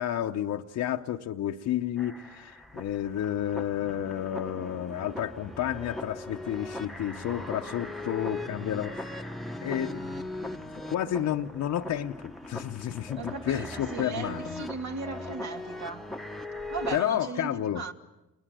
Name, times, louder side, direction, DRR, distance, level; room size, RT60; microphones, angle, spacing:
voice 1, 0.0-9.3 9.6-14.6 16.9-17.8, left 11 dB, 70° left, 0.9 m, -31 dB
sound 1, 2.0-17.0, left 1 dB, ahead, 1.0 m, -39 dB
voice 2, 13.2-16.1 16.7-17.9, right 4 dB, 65° right, 2.6 m, -37 dB
28.5 x 22.0 x 7.7 m
cardioid pair, 90°, 30 cm